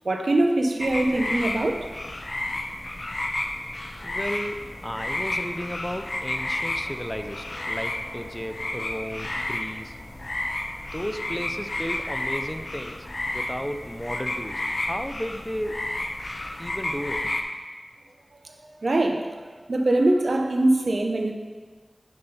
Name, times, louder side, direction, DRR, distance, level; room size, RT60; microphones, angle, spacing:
voice 1, 0.0-1.8 18.8-19.3 19.7-21.3, right 2 dB, 75° right, 3 dB, 0.7 m, -22 dB
sound 1, 0.8-17.4, left 1 dB, 55° left, 0.6 m, -31 dB
voice 2, 4.0-9.9 10.9-13.0 13.3-14.6 14.9-15.8 16.6-17.3, equal, 10° left, 7 dB, 0.5 m, -34 dB
6.6 x 4.2 x 5.5 m, 1.4 s
wide cardioid pair, 50°, 0 cm